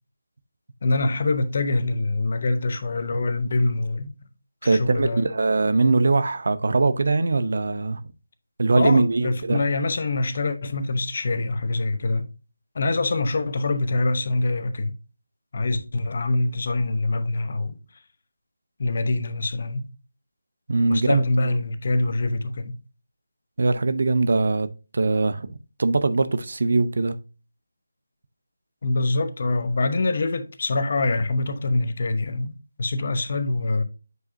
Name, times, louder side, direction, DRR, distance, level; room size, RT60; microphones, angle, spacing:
voice 1, 0.8-4.1 4.6-5.3 8.7-12.3 12.7-14.9 15.5-17.8 18.8-19.9 20.9-22.7 28.8-33.8, left 2 dB, 45° left, 0.8 m, -24 dB
voice 2, 4.6-8.0 8.6-9.6 20.7-21.6 23.6-24.7 24.9-27.2, right 3 dB, 55° right, 0.7 m, -21 dB
8.0 x 4.8 x 2.7 m
figure-of-eight pair, 160°, 0 cm